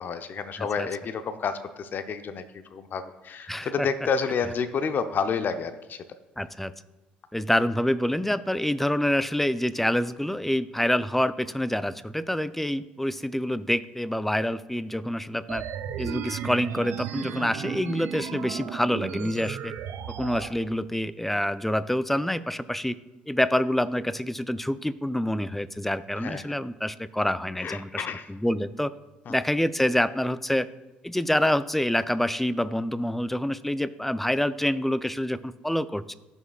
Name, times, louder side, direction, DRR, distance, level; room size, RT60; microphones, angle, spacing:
voice 1, 0.0-2.4 2.7-6.0 26.2-26.4 27.6-28.3 29.3-29.4, left 6 dB, 45° left, 10 dB, 0.6 m, -30 dB
voice 2, 0.6-0.9 3.5-3.9 6.4-6.7 7.3-15.6 16.0-19.7 20.2-23.0 23.3-28.9 29.3-30.7 31.0-36.2, left 1 dB, 5° left, 16 dB, 0.4 m, -27 dB
sound 1, 15.5-20.5, right 9 dB, 60° right, 0.7 m, -35 dB
14.0 x 6.3 x 2.4 m, 1.0 s
hypercardioid pair, 55°, 4 cm